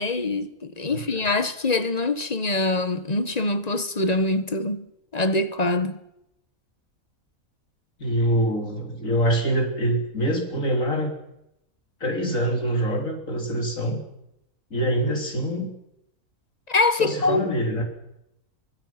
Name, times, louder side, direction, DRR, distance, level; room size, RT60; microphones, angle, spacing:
voice 1, 0.0-4.9 5.1-6.0 16.7-17.5, left 2 dB, 30° left, 1.4 m, -24 dB
voice 2, 0.9-1.3 8.0-11.1 12.0-14.0 14.7-15.7 16.9-17.8, right 1 dB, 70° left, 3.9 m, -25 dB
23.5 x 23.0 x 5.9 m
omnidirectional pair, 1.5 m